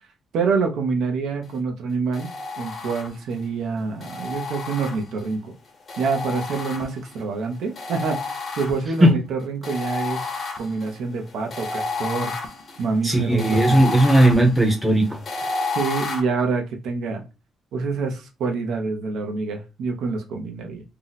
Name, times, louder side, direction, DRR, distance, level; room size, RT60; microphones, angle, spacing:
voice 1, 0.3-5.5 6.0-10.3 10.6-12.3 12.8-14.0 15.7-17.2 17.7-20.8, right 4 dB, 70° right, 0.6 m, -26 dB
sound 1, 2.1-3.4 4.0-5.3 5.9-7.2 7.8-9.1 9.6-16.2, left 3 dB, 35° left, 0.7 m, -31 dB
voice 2, 13.0-15.2, right 1 dB, 5° right, 0.7 m, -16 dB
2.7 x 2.1 x 3.9 m
cardioid pair, 160°, 0 cm